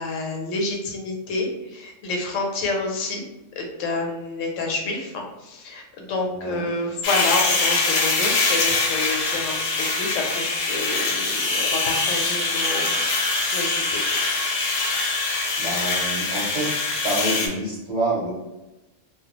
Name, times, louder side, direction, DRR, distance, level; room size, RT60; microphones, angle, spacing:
voice 1, 0.0-3.2 3.6-14.3, left 2 dB, 85° left, 1 dB, 1.0 m, -29 dB
voice 2, 6.3-6.6 15.6-16.7 17.0-18.3, right 2 dB, 45° right, -8 dB, 0.7 m, -27 dB
sound 1, 7.0-17.5, left 3 dB, 60° left, 0.7 m, -23 dB
2.3 x 2.2 x 2.9 m, 1.0 s
omnidirectional pair, 1.3 m